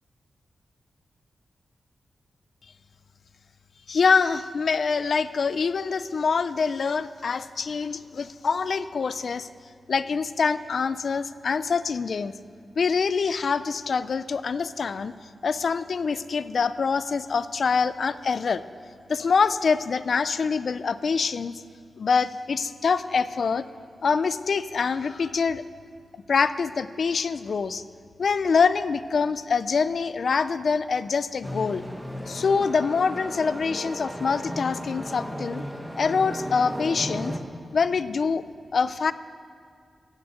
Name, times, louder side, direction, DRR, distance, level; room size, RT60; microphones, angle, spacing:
voice 1, 3.9-9.5 9.9-12.3 12.8-15.1 15.4-18.6 19.1-21.6 22.0-23.6 24.0-25.6 26.3-27.8 28.2-31.8 32.3-35.6 36.0-37.3 37.7-38.4 38.7-39.1, left 5 dB, 65° left, 14 dB, 0.4 m, -25 dB
sound 1, 31.4-37.4, equal, 5° right, 1.0 m, -35 dB
16.5 x 6.6 x 8.1 m, 2.3 s
wide cardioid pair, 120°, 0 cm